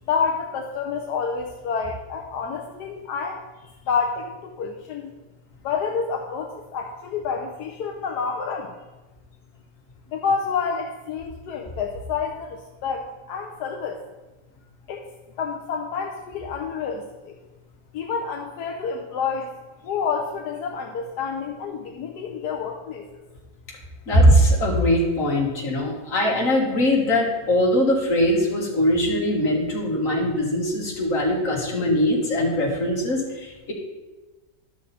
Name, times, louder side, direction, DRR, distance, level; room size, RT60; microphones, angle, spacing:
voice 1, 0.1-5.2 5.6-8.7 10.1-14.0 14.9-15.1 15.4-17.4 17.9-19.5 19.8-23.2, left 5 dB, 85° left, 2 dB, 1.3 m, -29 dB
voice 2, 24.1-33.7, equal, 55° left, -2 dB, 2.2 m, -21 dB
11.5 x 6.2 x 4.2 m, 1.1 s
omnidirectional pair, 1.7 m